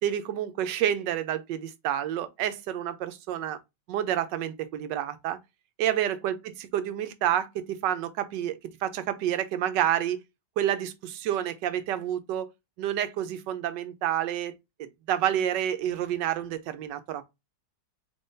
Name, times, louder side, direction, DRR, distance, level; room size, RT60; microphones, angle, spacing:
voice 1, 0.0-3.6 3.9-5.4 5.8-10.2 10.6-12.5 12.8-17.2, right 11 dB, 80° right, 1.2 m, -29 dB
3.8 x 3.7 x 2.6 m
omnidirectional pair, 1.9 m